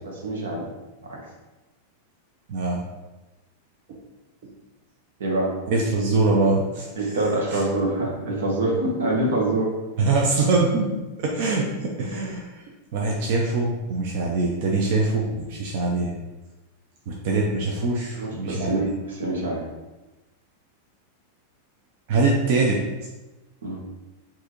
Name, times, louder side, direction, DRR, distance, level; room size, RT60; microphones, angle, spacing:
voice 1, 0.0-0.7 5.2-5.5 7.0-9.7 18.2-19.7 23.6-23.8, right 2 dB, 90° right, -1 dB, 1.1 m, -25 dB
voice 2, 2.5-2.8 3.9-4.0 5.7-7.1 7.5-7.6 10.0-10.9 11.2-12.5 12.9-16.2 17.1-18.9 22.1-22.8, right 3 dB, 60° right, -2 dB, 0.6 m, -23 dB
4.6 x 2.7 x 3.0 m, 1.1 s
supercardioid pair, 130°, 0 cm